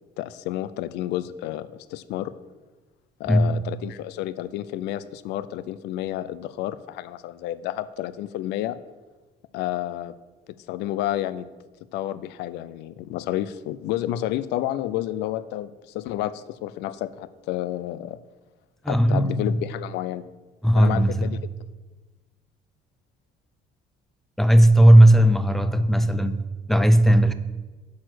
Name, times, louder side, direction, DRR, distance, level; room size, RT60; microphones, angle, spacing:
voice 1, 0.2-2.3 3.2-8.8 9.5-10.1 10.7-11.5 11.9-18.2 18.9-20.2 20.7-21.4, left 13 dB, 90° left, 16 dB, 0.5 m, -30 dB
voice 2, 18.8-19.6 20.6-21.3 24.4-26.4 26.7-27.3, right 1 dB, ahead, 11 dB, 0.5 m, -16 dB
8.4 x 4.7 x 6.2 m, 1.2 s
cardioid pair, 110°, 17 cm